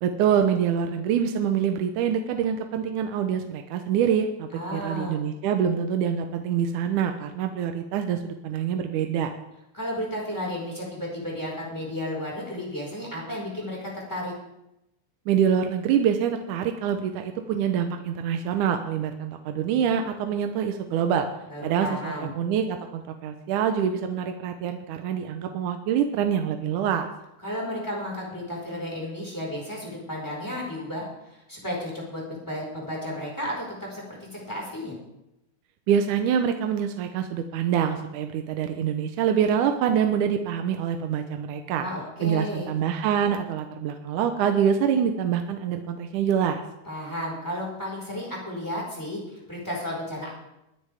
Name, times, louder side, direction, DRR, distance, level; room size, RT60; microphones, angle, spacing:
voice 1, 0.0-9.3 15.3-21.3 21.6-27.1 35.9-41.9 42.2-46.6, right 8 dB, 80° right, 6 dB, 2.2 m, -25 dB
voice 2, 4.5-5.2 9.7-14.3 21.5-22.3 27.4-34.0 34.3-34.9 41.8-42.7 46.9-50.3, left 1 dB, 5° left, -4 dB, 4.4 m, -33 dB
22.0 x 9.7 x 3.5 m, 0.87 s
omnidirectional pair, 3.6 m